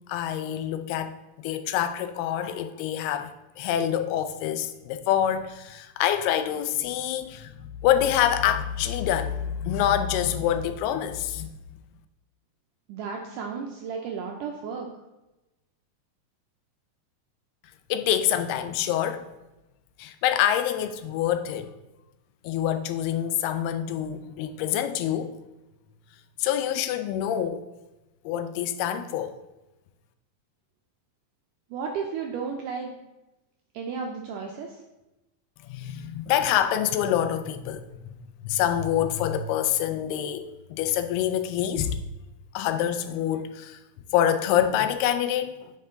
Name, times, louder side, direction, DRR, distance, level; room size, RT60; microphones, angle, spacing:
voice 1, 0.1-1.2 1.4-11.6 17.9-19.3 20.0-21.7 22.4-25.4 26.4-27.7 28.3-29.3 35.6-37.8 38.1-42.0 42.5-43.8 44.1-45.7, left 10 dB, 85° left, 2.6 m, -26 dB
voice 2, 12.9-14.9 31.7-32.9 33.7-34.8, right 5 dB, 80° right, 1.9 m, -33 dB
9.0 x 5.5 x 3.7 m
omnidirectional pair, 4.5 m